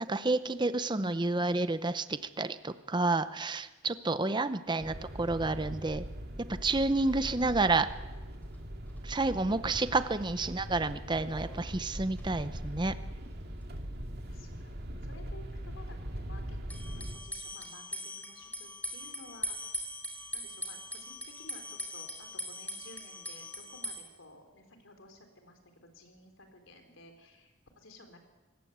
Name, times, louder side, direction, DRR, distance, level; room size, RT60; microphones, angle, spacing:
voice 1, 0.1-6.0 6.6-7.9 9.0-13.0, right 3 dB, 20° right, 12 dB, 0.7 m, -30 dB
sound 1, 4.8-17.2, equal, 50° right, 2.4 m, -41 dB
sound 2, 8.1-8.2 8.5-8.6 8.9-9.0 9.6-10.0 10.3-12.3 12.5-12.6 16.7-24.0, equal, 10° left, 3.4 m, -42 dB
voice 2, 14.3-19.6 20.3-28.2, left 1 dB, 75° left, 6 dB, 4.2 m, -54 dB
24.5 x 18.5 x 8.1 m, 1.2 s
head